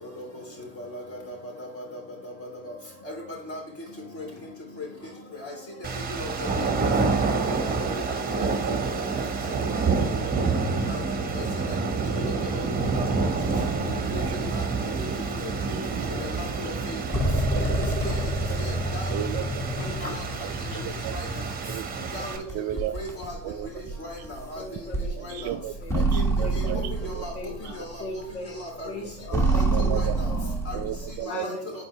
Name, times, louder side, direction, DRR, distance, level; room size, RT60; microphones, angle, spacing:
voice 1, 0.0-2.7 3.0-3.6 4.1-4.5 4.8-4.9 5.4-6.8 7.3-8.4 9.6-9.9 10.7-11.8 12.2-12.6 12.9-13.3 14.1-14.6 15.0-15.1 15.4-15.8 16.0-17.2 18.0-18.2 18.6-19.2 19.8-20.2 21.1-21.5 22.1-22.3 22.7-23.4 23.8-24.8 25.2-25.6 26.1-26.3 26.5-26.6 27.0-27.3 27.7-28.0 28.4-28.9 29.4-30.3 30.6-30.8 31.2-31.8, left 1 dB, 30° left, 0 dB, 3.2 m, -38 dB
sound 1, 5.8-22.4, right 4 dB, 20° right, 1.4 m, -28 dB
sound 2, 12.8-15.0 15.6-15.7 16.9-21.9 22.5-28.3 28.8-31.2, right 2 dB, 5° left, 1.4 m, -28 dB
voice 2, 17.5-17.8 19.1-19.6 20.8-21.2 21.7-22.1 22.5-23.0 23.4-23.7 25.2-26.8 27.2-27.3 29.3-30.1 30.7-31.5, right 13 dB, 40° right, 10 dB, 0.4 m, -34 dB
voice 3, 18.8-19.1 19.4-19.5 19.8-20.1 20.7-20.8 22.2-22.4 24.6-25.4 25.8-26.1 26.4-26.9 27.3-28.6 28.8-29.6 30.3-30.5 31.3-31.8, left 2 dB, 75° left, 0 dB, 2.0 m, -39 dB
8.7 x 4.4 x 3.4 m, 0.62 s
figure-of-eight pair, 70°, 45 cm